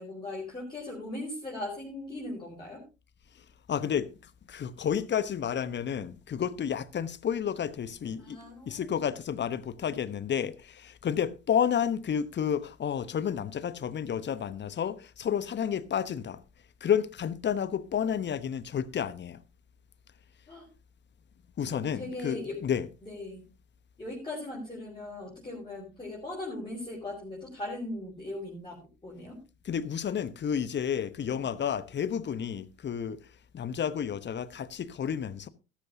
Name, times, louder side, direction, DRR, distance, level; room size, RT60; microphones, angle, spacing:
voice 1, 0.0-2.8 8.2-9.1 20.5-20.6 21.7-22.6 23.0-23.4 24.0-29.4 31.3-31.4, left 2 dB, 10° left, 5.0 m, -39 dB
voice 2, 3.7-4.1 4.5-16.4 16.8-19.4 21.6-22.9 29.6-33.2 33.5-35.5, left 8 dB, 30° left, 1.0 m, -31 dB
13.5 x 13.5 x 2.7 m
figure-of-eight pair, 65°, 38 cm